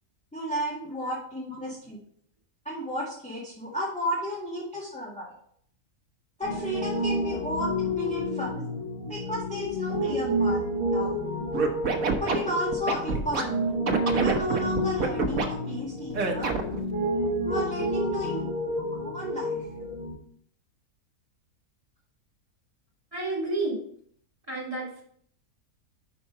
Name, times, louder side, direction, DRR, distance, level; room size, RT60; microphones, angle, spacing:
voice 1, 0.3-2.0 2.7-5.3 6.4-8.6 9.1-10.6 10.9-11.2 12.1-13.7 14.2-16.5 17.5-18.5 19.0-19.6, equal, 5° left, -6 dB, 1.6 m, -33 dB
Piano, 6.4-20.1, equal, 20° left, 3.5 m, -30 dB
Scratching (performance technique), 11.5-13.4 13.9-15.5 16.1-16.8, right 5 dB, 65° right, 1.5 m, -26 dB
voice 2, 18.4-18.7 23.1-23.8 24.5-25.0, right 2 dB, 20° right, -6 dB, 3.6 m, -32 dB
5.9 x 5.8 x 5.4 m, 0.62 s
omnidirectional pair, 1.6 m